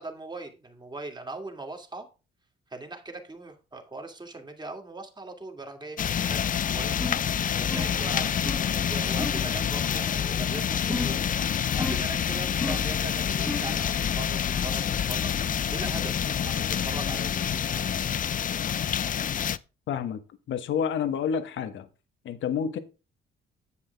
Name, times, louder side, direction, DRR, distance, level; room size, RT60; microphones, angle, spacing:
voice 1, 0.0-2.1 2.7-7.3 7.6-14.8 15.1-18.1, right 2 dB, 20° right, 2.6 m, -40 dB
sound 1, 6.0-19.6, left 8 dB, 45° left, 0.5 m, -27 dB
sound 2, 7.0-7.3 7.7-8.0 8.5-8.7 9.2-9.5 10.9-11.3 11.8-12.2 12.6-13.0 13.5-13.8, left 2 dB, 10° left, 1.5 m, -34 dB
voice 2, 19.9-20.2 20.5-21.9 22.2-22.8, left 7 dB, 75° left, 1.2 m, -29 dB
9.7 x 7.8 x 3.4 m
cardioid pair, 90°, 20 cm